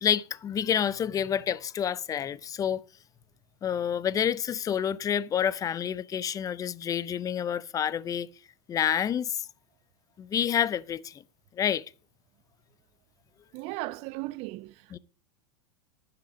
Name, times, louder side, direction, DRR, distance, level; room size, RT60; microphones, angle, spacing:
voice 1, 0.0-2.8 3.6-8.3 8.7-9.4 10.2-11.1 11.6-11.8 14.9-15.0, left 9 dB, 25° left, 0.5 m, -28 dB
voice 2, 13.5-14.8, right 20 dB, 45° right, 0.4 m, -36 dB
13.0 x 6.0 x 5.1 m
hypercardioid pair, 110°, 14 cm